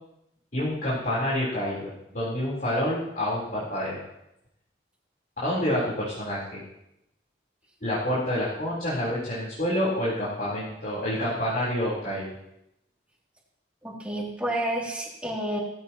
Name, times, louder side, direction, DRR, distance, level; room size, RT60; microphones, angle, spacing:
voice 1, 0.5-4.0 5.4-6.6 7.8-12.3, left 1 dB, 45° left, -8 dB, 4.1 m, -28 dB
voice 2, 13.8-15.6, right 1 dB, 5° right, -4 dB, 2.9 m, -30 dB
17.5 x 15.0 x 3.0 m, 0.83 s
head